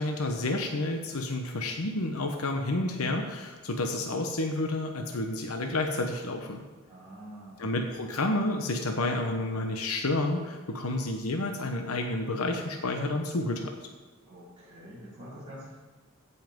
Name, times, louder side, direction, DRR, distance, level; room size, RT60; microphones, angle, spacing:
voice 1, 0.0-6.6 7.6-13.7, left 2 dB, 90° left, 3 dB, 1.0 m, -30 dB
voice 2, 6.9-7.9 14.3-15.7, equal, 25° right, -13 dB, 4.1 m, -46 dB
15.5 x 5.6 x 5.3 m, 1.4 s
head